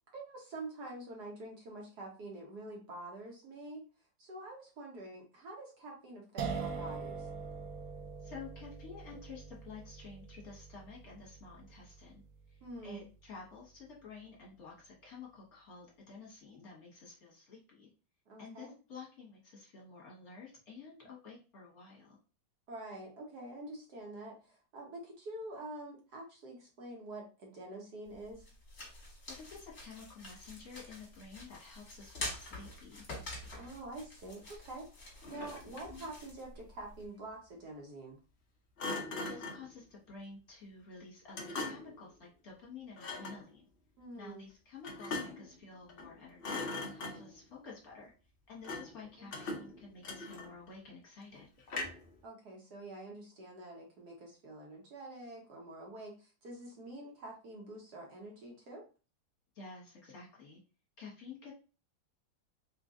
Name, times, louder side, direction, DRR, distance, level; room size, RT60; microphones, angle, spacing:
voice 1, 0.1-3.8 4.2-7.3 12.6-13.0 18.3-18.7 22.7-28.5 33.5-38.2 44.0-44.4 49.2-49.3 52.2-58.9, right 2 dB, 60° right, -1 dB, 1.4 m, -47 dB
sound 1, 6.4-13.3, right 5 dB, 90° right, 0.7 m, -43 dB
voice 2, 8.2-12.2 12.5-17.9 18.4-22.2 29.3-33.0 39.1-43.7 44.2-48.1 48.5-51.5 59.5-60.6 61.0-61.5, left 4 dB, 50° left, -3 dB, 1.4 m, -51 dB
sound 2, 28.1-37.1, left 2 dB, 35° left, 1.6 m, -47 dB
Thump thud, 35.2-36.0 38.8-39.7 41.3-42.0 43.0-43.4 44.8-45.5 45.9-46.1 46.4-47.4 48.6-49.0 49.3-50.7 51.7-52.1, left 3 dB, 80° left, 0.5 m, -40 dB
3.9 x 2.5 x 3.6 m, 0.34 s
omnidirectional pair, 2.2 m